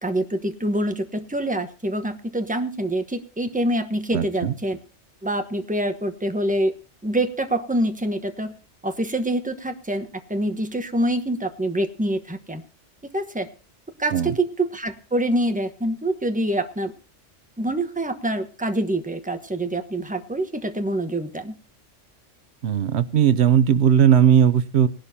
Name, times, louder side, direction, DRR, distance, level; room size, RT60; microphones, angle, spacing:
voice 1, 0.0-4.8 5.2-6.7 7.0-8.5 8.8-12.6 13.1-13.5 14.0-16.9 17.6-21.6, right 1 dB, 5° right, 7 dB, 1.1 m, -25 dB
voice 2, 4.1-4.5 14.1-14.3 22.6-24.9, right 8 dB, 60° right, 15 dB, 1.0 m, -18 dB
20.0 x 11.5 x 2.8 m, 0.35 s
omnidirectional pair, 1.3 m